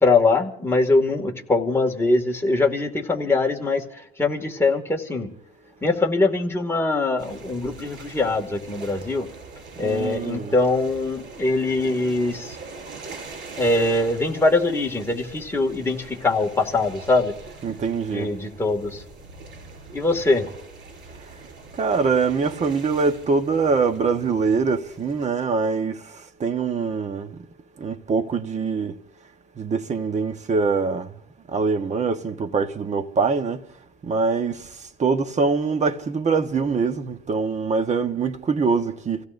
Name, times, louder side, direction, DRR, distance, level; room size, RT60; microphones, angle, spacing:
voice 1, 0.0-5.3 5.8-9.3 9.8-12.6 13.6-17.3 18.1-19.0 19.9-20.5, left 3 dB, 10° left, 2.3 m, -22 dB
sound 1, 7.2-25.3, right 4 dB, 65° right, 7.5 m, -42 dB
voice 2, 9.8-10.6 17.6-18.3 21.8-27.4 27.8-29.0 29.6-31.1 31.5-33.6 34.0-34.7 35.0-39.2, right 4 dB, 35° right, 1.3 m, -23 dB
29.0 x 16.5 x 2.7 m
cardioid pair, 110°, 20 cm